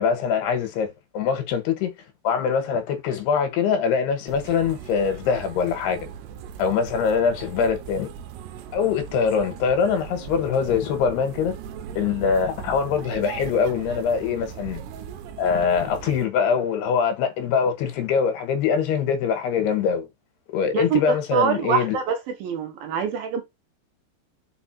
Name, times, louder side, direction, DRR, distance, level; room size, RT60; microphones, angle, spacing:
voice 1, 0.0-1.9 2.2-6.1 6.6-8.1 8.7-11.6 11.9-14.8 15.4-20.1 20.5-22.0, left 6 dB, 80° left, 3.4 m, -23 dB
sound 1, 4.3-16.3, right 8 dB, 90° right, 2.8 m, -39 dB
voice 2, 20.7-23.4, right 7 dB, 70° right, 2.6 m, -25 dB
5.7 x 5.2 x 4.4 m
omnidirectional pair, 4.7 m